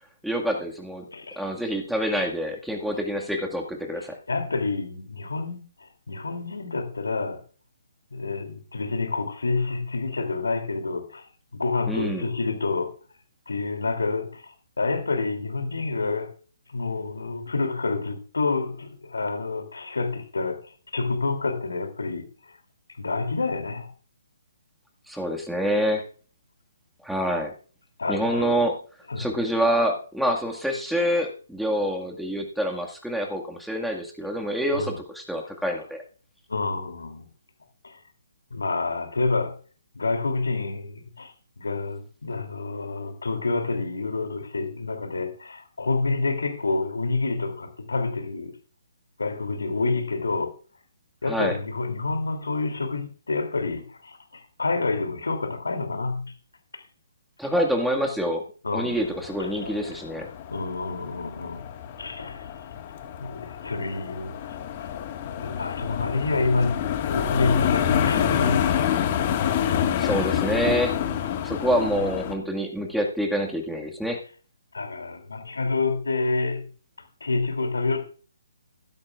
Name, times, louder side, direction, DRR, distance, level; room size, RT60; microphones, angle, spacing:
voice 1, 0.2-1.0 1.4-4.2 11.9-12.3 25.1-26.0 27.0-27.5 28.1-28.8 29.2-36.0 51.3-51.6 57.4-58.4 58.7-60.3 70.0-70.9 71.4-74.2, equal, ahead, 1.9 m, -26 dB
voice 2, 1.1-1.4 4.0-7.4 8.1-11.3 11.5-12.9 13.5-16.3 16.7-22.3 23.0-23.9 25.1-25.3 28.0-28.6 29.1-29.3 34.7-35.0 36.5-37.3 37.8-38.0 38.5-39.5 39.9-48.6 49.2-50.5 51.2-56.3 58.6-59.0 59.4-59.8 60.5-61.6 62.0-62.5 63.2-64.3 65.4-68.9 74.7-76.6 77.2-78.1, left 3 dB, 80° left, 2.9 m, -28 dB
sound 1, 58.9-72.3, left 9 dB, 35° left, 1.7 m, -28 dB
15.5 x 12.5 x 2.5 m
figure-of-eight pair, 140°, 0 cm